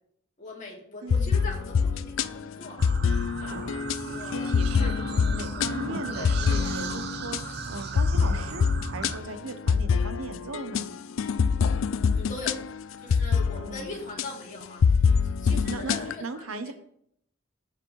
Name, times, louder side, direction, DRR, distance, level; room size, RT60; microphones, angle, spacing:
voice 1, 0.4-3.0 3.4-3.8 4.1-5.8 6.1-6.8 7.0-7.1 9.3-9.4 12.1-12.6 13.0-16.7, left 2 dB, 35° left, -2 dB, 2.4 m, -41 dB
voice 2, 1.0-1.3 4.0-4.9 5.3-7.4 7.7-10.9 13.5-13.9 15.5-16.7, right 3 dB, 80° right, 10 dB, 0.9 m, -38 dB
sound 1, 1.1-7.5 8.0-13.9 14.2-14.3 14.8-16.2, left 5 dB, 70° left, 0.4 m, -25 dB
sound 2, 2.8-9.2, right 4 dB, 50° right, 0.7 m, -36 dB
15.0 x 5.0 x 3.2 m, 0.69 s
head